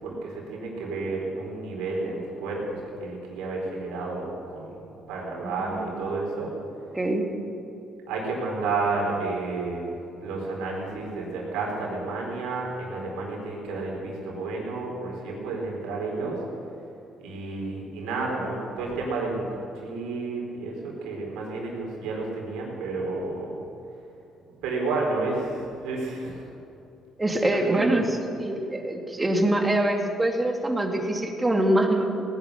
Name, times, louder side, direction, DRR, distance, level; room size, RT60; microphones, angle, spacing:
voice 1, 0.0-6.5 8.1-16.4 17.2-19.4 19.8-23.5 24.5-26.4 27.5-28.0, right 3 dB, 90° right, -1 dB, 4.1 m, -31 dB
voice 2, 5.4-5.9 6.9-7.2 27.2-32.2, right 1 dB, 15° right, 3 dB, 2.3 m, -24 dB
18.5 x 11.0 x 6.8 m, 2.8 s
cardioid pair, 85°, 0 cm